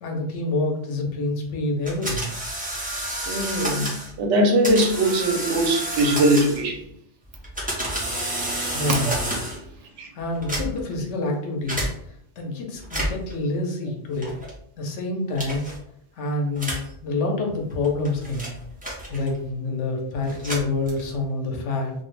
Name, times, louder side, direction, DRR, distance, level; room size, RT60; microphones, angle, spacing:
voice 1, 0.0-2.3 8.7-9.2 10.1-14.3 14.8-15.6 16.1-18.5 19.1-21.9, left 2 dB, 90° left, 1 dB, 0.9 m, -27 dB
sound 1, 1.9-4.1 4.6-6.8 7.3-9.7 10.3-11.0 11.7-11.9 12.8-13.3 14.2-14.5 15.4-15.8 16.6-16.9 17.7-19.5 20.2-21.3, right 1 dB, 10° right, 0.5 m, -30 dB
voice 2, 3.3-3.9 4.2-6.8 9.1-9.2 10.0-10.1, right 1 dB, 80° right, 2 dB, 0.9 m, -21 dB
2.4 x 2.0 x 3.0 m, 0.70 s
omnidirectional pair, 1.2 m